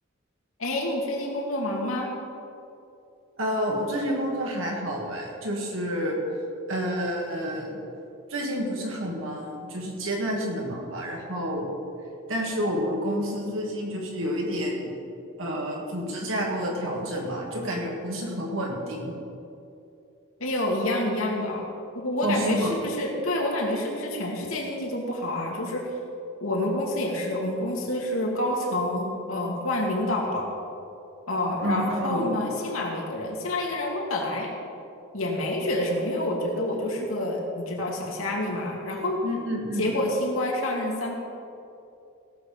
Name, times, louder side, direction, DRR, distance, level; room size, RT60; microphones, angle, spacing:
voice 1, 0.6-2.1 20.4-21.6 21.9-25.9 26.4-30.5 31.3-34.5 35.1-39.2 39.8-41.1, left 1 dB, 90° left, -1 dB, 2.4 m, -28 dB
voice 2, 3.4-6.2 6.7-7.8 8.3-11.7 12.3-14.9 15.4-19.1 22.2-22.8 31.6-32.3 39.2-39.9, equal, 80° right, -1 dB, 2.5 m, -29 dB
16.5 x 7.0 x 5.6 m, 2.7 s
head